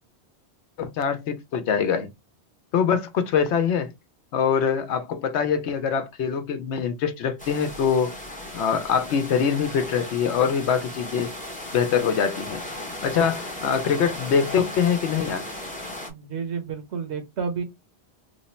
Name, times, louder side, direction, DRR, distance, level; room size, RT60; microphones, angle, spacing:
voice 1, 0.8-2.1 2.7-3.9 4.3-8.1 8.5-11.3 11.7-12.6 13.0-15.5, left 7 dB, 80° left, 0.9 m, -24 dB
sound 1, 7.4-16.1, left 1 dB, 10° left, 0.7 m, -36 dB
voice 2, 16.1-17.6, right 6 dB, 75° right, 1.2 m, -30 dB
3.2 x 2.0 x 4.2 m
omnidirectional pair, 1.1 m